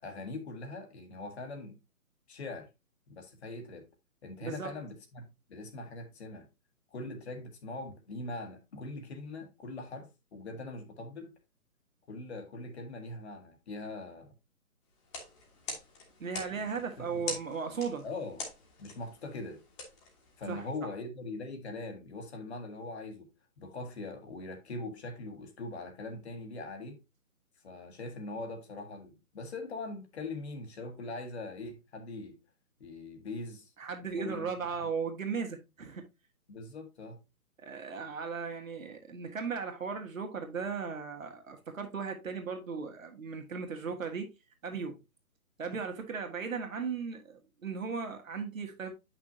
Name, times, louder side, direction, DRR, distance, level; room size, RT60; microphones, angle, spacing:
voice 1, 0.0-1.8 2.3-2.7 3.1-3.9 4.2-6.5 6.9-11.4 12.1-14.3 16.5-17.2 18.0-18.4 18.8-19.6 20.4-23.3 23.6-27.0 27.6-32.4 32.8-33.7 34.0-34.5 34.8-34.9 36.5-37.2, left 2 dB, 50° left, 1.6 m, -42 dB
voice 2, 4.4-4.8 16.2-18.0 20.5-20.6 33.8-36.1 37.6-44.3 44.6-45.0 45.6-48.9, right 5 dB, 65° right, 1.8 m, -36 dB
sound 1, 15.0-20.8, left 3 dB, 20° left, 1.4 m, -44 dB
7.5 x 5.9 x 2.7 m
figure-of-eight pair, 140°, 43 cm